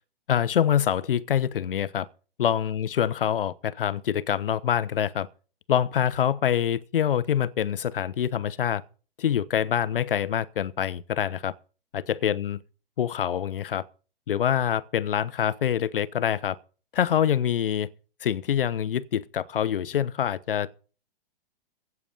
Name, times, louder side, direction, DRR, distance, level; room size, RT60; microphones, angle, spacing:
voice 1, 0.3-2.1 2.4-5.3 5.7-8.8 9.2-11.5 11.9-12.6 13.0-13.8 14.3-16.6 16.9-17.9 18.2-20.8, left 9 dB, 65° left, 1.0 m, -25 dB
16.0 x 8.2 x 5.4 m
figure-of-eight pair, 110°, 30 cm